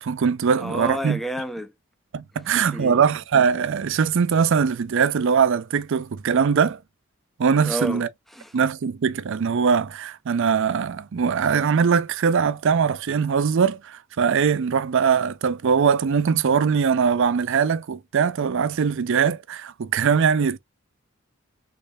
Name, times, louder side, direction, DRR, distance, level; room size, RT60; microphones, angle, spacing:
voice 1, 0.0-1.2 2.1-6.8 7.4-8.1 8.5-20.6, right 6 dB, 65° right, 0.4 m, -21 dB
voice 2, 0.6-1.7 2.6-3.0 7.6-8.1 8.3-8.5, equal, ahead, 0.4 m, -30 dB
3.3 x 3.3 x 2.6 m
head